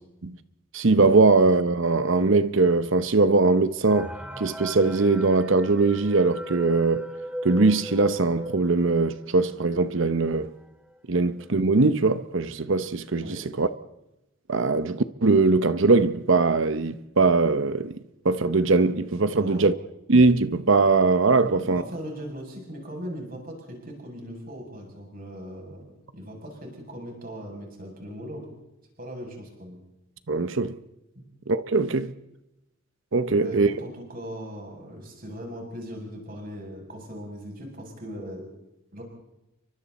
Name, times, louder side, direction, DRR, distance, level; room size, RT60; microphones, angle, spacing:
voice 1, 0.7-7.1 7.4-10.5 11.1-13.7 14.5-18.0 18.2-19.7 20.1-21.8 30.3-30.8 31.5-32.1 33.1-33.7, right 3 dB, 60° right, 0.8 m, -21 dB
sound 1, 3.9-9.3 9.7-9.8 10.0-10.2 10.9-11.0 11.4-11.7, equal, 5° right, 1.2 m, -38 dB
voice 2, 19.3-19.7 21.4-28.5 29.0-29.8 33.3-38.4 38.9-39.0, equal, 40° right, 7.4 m, -39 dB
29.5 x 24.0 x 4.2 m
head